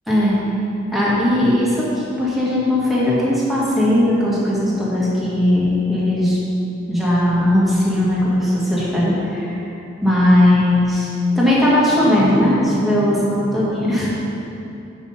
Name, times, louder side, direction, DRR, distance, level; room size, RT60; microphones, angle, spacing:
voice 1, 0.1-0.4 0.9-6.4 6.9-9.8 10.0-14.1, left 1 dB, ahead, -8 dB, 1.8 m, -18 dB
7.1 x 6.1 x 5.6 m, 2.9 s
head